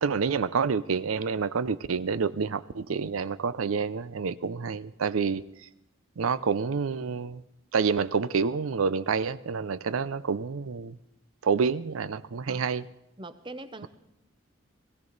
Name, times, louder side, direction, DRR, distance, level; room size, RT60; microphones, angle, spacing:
voice 1, 0.0-5.4 6.2-7.4 7.7-11.0 11.4-12.9, right 5 dB, 80° right, 17 dB, 0.5 m, -28 dB
voice 2, 13.2-13.9, right 2 dB, 25° right, 11 dB, 0.6 m, -41 dB
19.0 x 15.5 x 4.0 m, 0.89 s
head